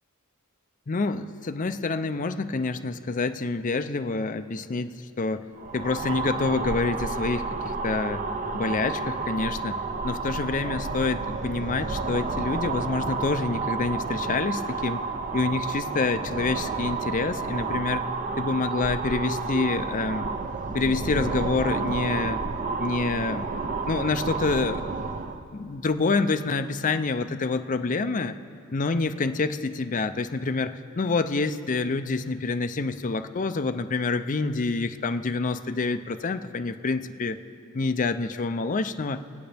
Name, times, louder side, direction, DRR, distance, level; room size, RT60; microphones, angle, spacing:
voice 1, 0.9-4.9 5.2-5.4 5.7-8.2 8.5-15.0 15.3-18.1 18.4-20.3 20.7-22.4 22.8-23.6 23.9-24.9 25.5-28.4 28.7-37.4 37.7-39.2, left 3 dB, 40° left, 8 dB, 0.5 m, -27 dB
sound 1, 5.6-25.4, right 4 dB, 35° right, 0.6 m, -31 dB
26.5 x 9.0 x 3.4 m, 2.6 s
head